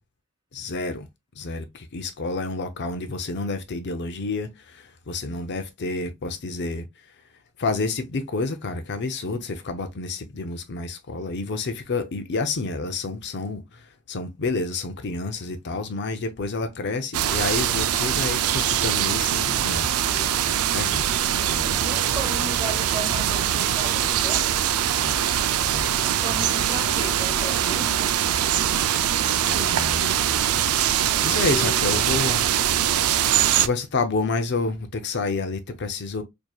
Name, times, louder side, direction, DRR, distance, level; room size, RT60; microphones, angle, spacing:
voice 1, 0.5-1.1 1.4-6.8 7.6-13.8 14.1-19.9 20.7-21.2 21.4-21.9 25.0-25.2 25.6-25.9 29.5-30.1 31.2-32.4 33.5-36.2, left 3 dB, 50° left, 0.6 m, -29 dB
sound 1, 17.1-33.7, right 10 dB, 85° right, 0.4 m, -23 dB
voice 2, 20.0-20.5 21.8-24.5 26.0-28.2, right 1 dB, 20° right, 1.3 m, -36 dB
4.5 x 2.8 x 2.3 m
head